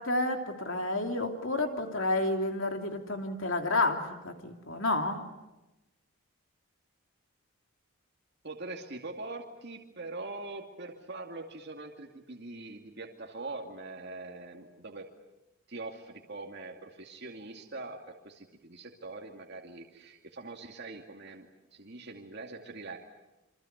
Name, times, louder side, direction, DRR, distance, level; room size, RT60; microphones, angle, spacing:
voice 1, 0.0-5.2, left 2 dB, 60° left, 4 dB, 3.1 m, -30 dB
voice 2, 8.4-15.1 15.7-18.0 18.2-21.5 21.7-23.0, right 2 dB, 50° right, 1 dB, 2.4 m, -43 dB
28.0 x 25.5 x 8.1 m, 1.0 s
head